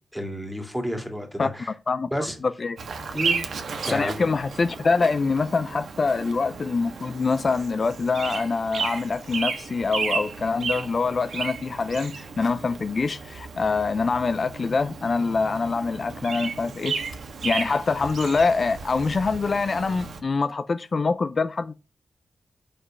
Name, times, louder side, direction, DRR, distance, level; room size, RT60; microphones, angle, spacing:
voice 1, 0.1-1.7 2.1-2.4 3.1-4.3, equal, ahead, 2.1 m, -31 dB
voice 2, 2.4-2.8 3.8-17.0 17.4-21.7, left 4 dB, 45° left, 0.5 m, -25 dB
Bird vocalization bird call bird song, 2.8-20.2, right 5 dB, 75° right, 1.4 m, -34 dB
6.1 x 5.4 x 5.4 m
wide cardioid pair, 110°, 0 cm